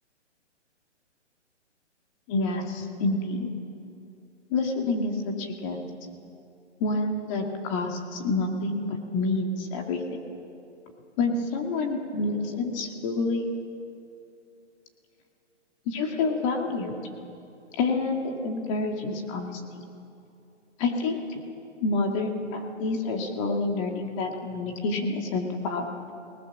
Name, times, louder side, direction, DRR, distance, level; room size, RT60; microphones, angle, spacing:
voice 1, 2.3-3.5 4.5-5.8 6.8-10.0 11.2-13.5 15.9-16.9 17.8-19.8 20.8-21.4 21.8-25.8, left 3 dB, 25° left, 2 dB, 2.3 m, -28 dB
29.5 x 19.5 x 7.4 m, 2.7 s
hypercardioid pair, 155°, 37 cm